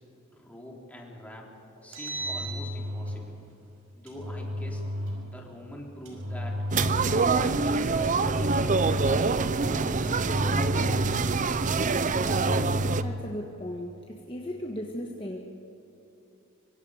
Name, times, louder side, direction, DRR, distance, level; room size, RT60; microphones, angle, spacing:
voice 1, 0.3-1.5 1.8-3.4 4.0-4.9 5.3-6.6 7.4-8.0 8.4-11.9, left 1 dB, 5° left, -1 dB, 3.5 m, -43 dB
Engine, 1.8-3.2 4.1-5.2 6.0-7.3 8.0-9.3 10.0-11.4 12.0-13.3, equal, 70° right, 5.8 m, -33 dB
sound 1, 6.7-13.0, right 4 dB, 35° right, 0.6 m, -25 dB
voice 2, 12.9-15.4, equal, 25° left, 0 dB, 1.6 m, -37 dB
25.0 x 24.5 x 5.0 m, 2.9 s
head